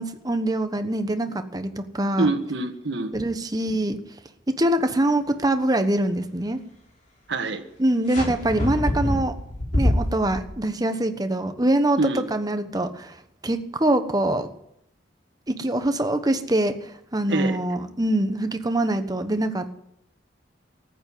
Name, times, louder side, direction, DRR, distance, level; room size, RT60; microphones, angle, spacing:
voice 1, 0.0-2.3 3.1-4.0 4.6-6.6 7.8-9.3 9.7-13.1 13.4-14.5 15.5-19.7, right 1 dB, 20° right, 8 dB, 1.2 m, -24 dB
voice 2, 2.2-3.1 7.3-7.6 12.0-12.2 17.3-17.6, right 3 dB, 75° right, 7 dB, 1.6 m, -25 dB
sound 1, 8.1-10.4, left 1 dB, 45° left, 4.6 m, -25 dB
14.5 x 9.3 x 9.4 m, 0.76 s
head